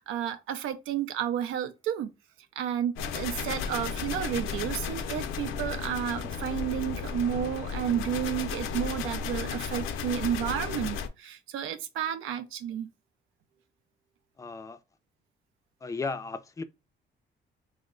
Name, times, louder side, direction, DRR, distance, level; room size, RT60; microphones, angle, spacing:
voice 1, 0.0-2.1 2.6-12.9, right 10 dB, 90° right, 0.5 m, -31 dB
sound 1, 3.0-11.1, left 6 dB, 85° left, 0.5 m, -34 dB
voice 2, 14.4-14.8 15.8-16.6, left 4 dB, 15° left, 0.4 m, -35 dB
3.0 x 2.1 x 3.5 m
cardioid pair, 90°, 20 cm